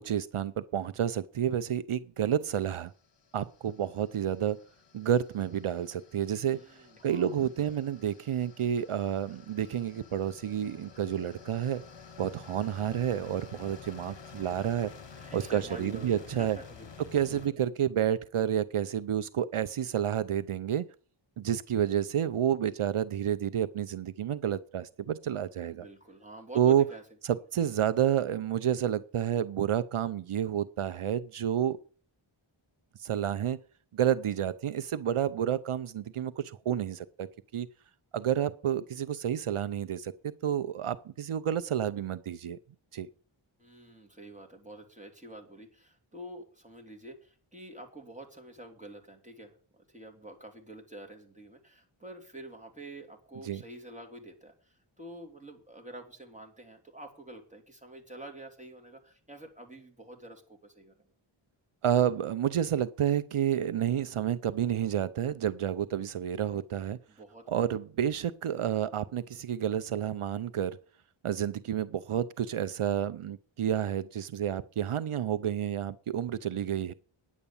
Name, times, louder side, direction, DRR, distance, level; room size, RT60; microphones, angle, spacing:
voice 1, 0.0-2.9 3.3-4.6 4.9-6.6 7.0-11.8 12.2-14.9 15.3-16.6 17.1-20.9 21.4-25.8 26.6-26.8 27.2-31.8 33.0-33.6 33.9-37.7 38.1-42.6 42.9-43.1 53.4-53.6 61.8-67.0 67.5-70.8 71.2-76.9, right 9 dB, 80° right, 13 dB, 0.6 m, -30 dB
sound 1, 2.8-17.5, left 5 dB, 60° left, 1.1 m, -51 dB
voice 2, 6.4-7.8 15.1-16.9 17.3-17.4 25.6-27.0 43.6-61.1 67.1-67.7, right 1 dB, 15° right, 2 dB, 3.2 m, -48 dB
9.8 x 8.1 x 7.0 m, 0.42 s
wide cardioid pair, 50°, 49 cm